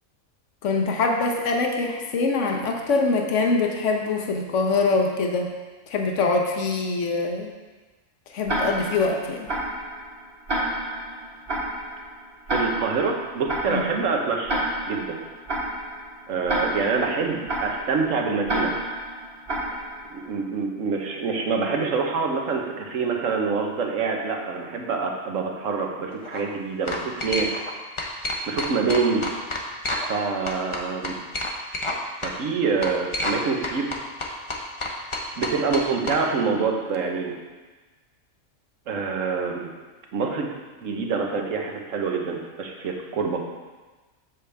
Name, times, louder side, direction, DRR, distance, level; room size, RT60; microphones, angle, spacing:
voice 1, 0.6-5.5 5.9-7.5 8.3-9.5 13.7-13.8, left 3 dB, 65° left, 2 dB, 1.2 m, -24 dB
Tick-tock, 8.5-20.3, right 1 dB, 45° right, 1.8 m, -30 dB
voice 2, 12.5-14.6 14.8-15.2 16.3-18.7 20.1-27.5 28.5-29.2 30.1-31.2 32.2-33.9 35.4-37.3 38.9-39.7 40.1-40.5 40.8-43.4, right 5 dB, 75° right, 1 dB, 1.3 m, -26 dB
sound 1, 26.1-26.4 26.9-27.7 28.0-30.2 30.5-32.0 32.2-32.3 32.8-33.4 33.6-36.2, left 2 dB, 30° left, 0.6 m, -29 dB
7.4 x 6.8 x 3.4 m, 1.3 s
omnidirectional pair, 1.4 m